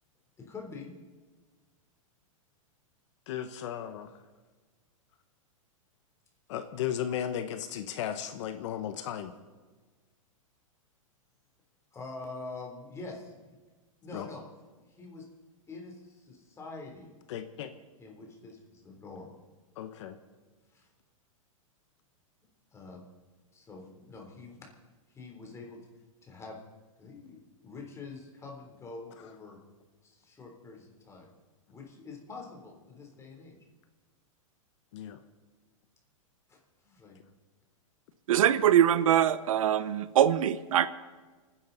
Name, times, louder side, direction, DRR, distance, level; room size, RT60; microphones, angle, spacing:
voice 1, 0.4-0.9 11.9-13.3 14.0-14.4 14.8-15.3 15.7-17.2 18.0-19.3 20.7-20.9 22.7-23.0 23.5-24.7 25.1-25.8 26.2-26.6 27.0-29.6 30.0-31.3 31.7-33.6 36.5-37.2, left 3 dB, 15° left, 1 dB, 3.4 m, -45 dB
voice 2, 3.3-4.1 6.5-9.3 14.1-14.3 17.3-17.7 19.8-20.2 34.9-35.2, left 10 dB, 60° left, 9 dB, 1.1 m, -35 dB
voice 3, 38.3-40.9, right 10 dB, 75° right, 15 dB, 0.8 m, -23 dB
29.5 x 10.0 x 4.0 m, 1.4 s
hypercardioid pair, 130°, 18 cm